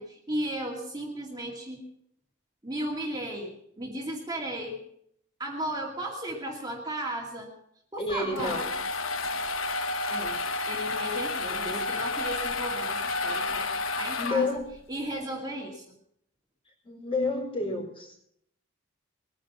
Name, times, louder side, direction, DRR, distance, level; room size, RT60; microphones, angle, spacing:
voice 1, 0.0-1.8 2.6-4.8 5.4-7.5 7.9-8.6 10.1-10.4 10.7-14.5 14.9-15.8, right 1 dB, 20° right, -1 dB, 2.4 m, -35 dB
voice 2, 8.0-8.8 11.5-11.9 14.2-14.6 16.8-18.3, left 3 dB, 25° left, 1 dB, 4.8 m, -30 dB
sound 1, 8.1-14.8, left 3 dB, 85° left, 1.1 m, -31 dB
21.5 x 10.0 x 6.0 m, 0.72 s
head